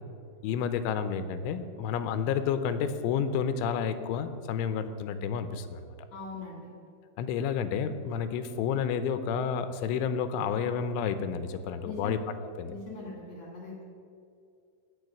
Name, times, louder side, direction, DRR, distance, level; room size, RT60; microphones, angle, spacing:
voice 1, 0.4-5.8 7.2-12.2 12.6-12.7, left 7 dB, 85° left, 11 dB, 3.2 m, -30 dB
voice 2, 6.1-6.7 11.8-12.2 12.7-13.8, left 3 dB, 50° left, -1 dB, 2.1 m, -41 dB
15.5 x 5.3 x 9.4 m, 2.4 s
omnidirectional pair, 5.5 m